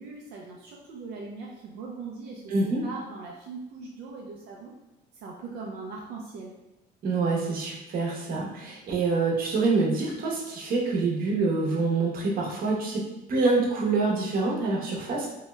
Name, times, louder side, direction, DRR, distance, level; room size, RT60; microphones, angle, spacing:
voice 1, 0.0-4.7 5.2-6.5, right 4 dB, 90° right, -2 dB, 0.5 m, -40 dB
voice 2, 2.5-2.8 7.0-13.0 13.3-15.3, right 3 dB, 60° right, -2 dB, 0.8 m, -26 dB
2.7 x 2.2 x 3.1 m, 1.0 s
cardioid pair, 110°, 17 cm